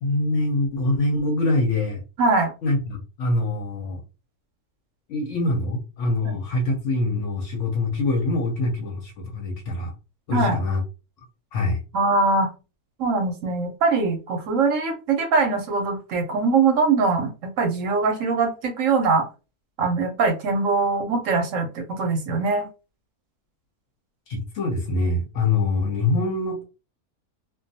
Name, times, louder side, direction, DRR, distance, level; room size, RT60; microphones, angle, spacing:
voice 1, 0.0-2.0 2.6-4.0 5.1-9.9 10.3-10.8 11.5-11.8 24.3-26.6, left 2 dB, 65° left, 3 dB, 0.8 m, -24 dB
voice 2, 2.2-2.5 6.2-6.4 10.3-10.6 11.9-12.5 13.0-19.3 19.8-22.7, right 4 dB, 65° right, 4 dB, 0.9 m, -22 dB
2.4 x 2.2 x 2.6 m, 0.31 s
omnidirectional pair, 1.6 m